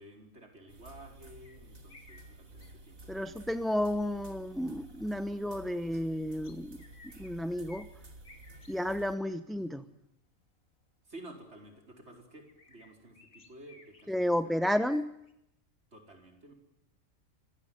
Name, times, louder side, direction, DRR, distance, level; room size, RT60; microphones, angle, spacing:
voice 1, 0.0-3.5 9.5-10.0 11.0-14.9 15.9-16.5, right 1 dB, 55° right, 3 dB, 5.1 m, -52 dB
sound 1, 0.7-9.1, right 2 dB, 80° right, 3.1 m, -52 dB
sound 2, 1.4-3.0 4.7-5.4 6.4-7.9 8.2-8.8 9.0-9.4 10.1-10.2 11.6-11.9 12.5-14.2 14.6-15.3, left 3 dB, 80° left, 3.3 m, -58 dB
voice 2, 3.1-6.8 7.0-7.9 8.7-9.8 14.1-15.1, left 1 dB, ahead, 11 dB, 0.7 m, -32 dB
26.0 x 18.5 x 9.3 m, 0.80 s
omnidirectional pair, 1.4 m